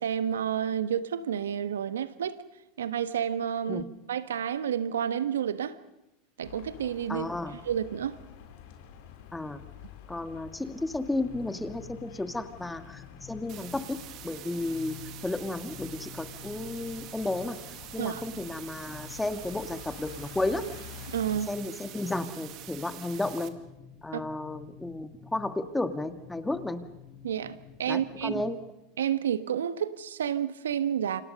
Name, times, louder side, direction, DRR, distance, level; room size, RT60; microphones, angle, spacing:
voice 1, 0.0-2.4 2.8-3.8 4.1-5.8 6.4-7.3 7.6-8.2 18.0-18.2 21.1-21.5 24.1-24.2 27.2-28.3 29.0-31.2, right 9 dB, 80° right, 1.3 m, -30 dB
sound 1, 6.4-21.4, left 9 dB, 65° left, 3.6 m, -49 dB
voice 2, 7.1-7.6 9.3-9.6 10.1-14.0 14.2-15.0 15.2-17.6 17.9-20.6 21.5-23.5 24.0-26.8 27.9-28.6, left 2 dB, 10° left, 2.1 m, -33 dB
sound 2, 11.1-28.5, left 8 dB, 30° left, 5.7 m, -50 dB
sound 3, 13.5-23.5, right 14 dB, 50° right, 1.9 m, -46 dB
29.0 x 26.0 x 5.4 m
hypercardioid pair, 90°, 0 cm